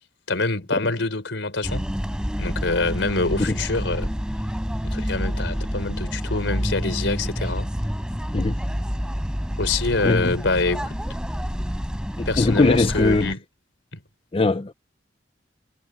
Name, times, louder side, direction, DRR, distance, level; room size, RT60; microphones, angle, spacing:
voice 1, 0.3-1.9 2.4-4.1 4.8-7.7 9.6-11.0 12.3-13.4 13.9-14.0, left 3 dB, 90° left, 3.8 m, -25 dB
sound 1, 1.6-13.3, equal, 5° right, 4.1 m, -28 dB
voice 2, 12.2-13.3 14.3-14.7, left 2 dB, 30° left, 0.6 m, -20 dB
head